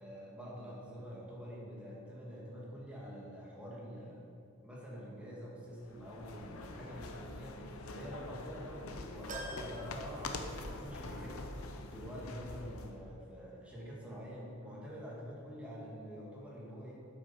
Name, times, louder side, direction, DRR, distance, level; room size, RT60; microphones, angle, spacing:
voice 1, 0.0-4.3 4.6-7.6 7.9-11.4 11.8-16.9, equal, 5° right, -6 dB, 2.0 m, -46 dB
sound 1, 5.8-13.0, left 2 dB, 75° left, 0.8 m, -45 dB
sound 2, 9.3-10.9 11.3-11.4 12.7-12.8, right 1 dB, 35° right, 1.0 m, -47 dB
8.6 x 7.9 x 5.6 m, 2.5 s
head